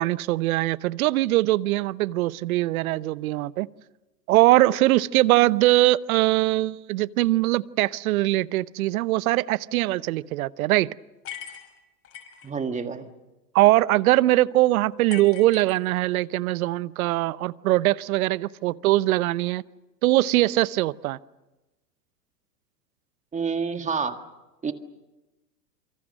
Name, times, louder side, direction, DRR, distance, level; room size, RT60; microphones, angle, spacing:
voice 1, 0.0-3.7 4.3-10.9 13.5-19.6 20.0-21.2, right 17 dB, 55° right, 19 dB, 0.9 m, -22 dB
sound 1, 11.2-12.5 15.1-16.3, left 9 dB, 25° left, 6.1 m, -40 dB
voice 2, 12.4-13.1 23.3-24.2 24.6-24.7, right 5 dB, 15° right, 8 dB, 1.8 m, -28 dB
28.0 x 25.0 x 6.5 m, 1.1 s
hypercardioid pair, 115°, 49 cm